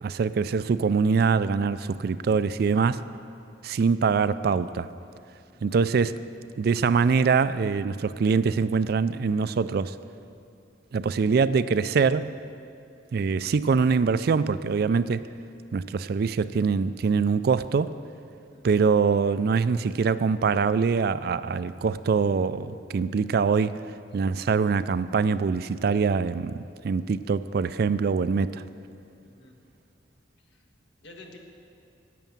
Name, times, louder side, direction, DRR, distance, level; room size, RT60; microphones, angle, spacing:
voice 1, 0.0-3.0 3.6-4.9 5.6-6.2 6.6-10.0 10.9-12.4 13.1-15.3 15.7-17.9 18.6-23.8 24.1-28.6, right 5 dB, 60° right, 15 dB, 0.4 m, -24 dB
voice 2, 29.2-29.6 30.5-30.6 31.0-31.4, left 2 dB, 75° left, 2 dB, 1.5 m, -50 dB
11.0 x 9.2 x 7.4 m, 2.5 s
head